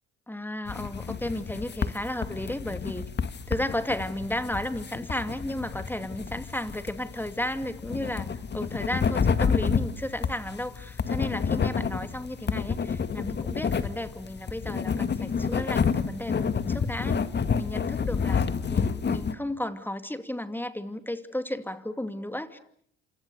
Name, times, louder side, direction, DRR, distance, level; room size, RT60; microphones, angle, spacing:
voice 1, 0.3-3.0 3.5-17.2 17.6-22.6, left 1 dB, 5° left, 10 dB, 2.4 m, -34 dB
sound 1, 0.7-19.3, left 6 dB, 35° left, 1.9 m, -29 dB
29.0 x 27.5 x 6.8 m, 0.64 s
hypercardioid pair, 65°, 29 cm